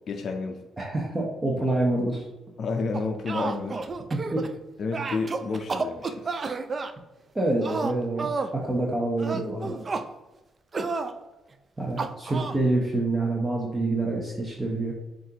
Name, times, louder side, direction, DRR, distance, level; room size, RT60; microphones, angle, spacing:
voice 1, 0.1-0.6 2.6-3.8 4.8-6.4, left 4 dB, 55° left, 3 dB, 0.4 m, -30 dB
voice 2, 0.8-2.3 4.1-4.5 7.3-9.8 11.8-14.9, right 2 dB, 20° right, -2 dB, 0.8 m, -27 dB
sound 1, 2.9-4.5 4.9-6.9 7.6-8.6 9.2-10.1 10.7-11.1 12.0-12.6, right 4 dB, 35° right, 0.3 m, -31 dB
7.3 x 2.5 x 2.8 m, 1.1 s
cardioid pair, 90°, 0 cm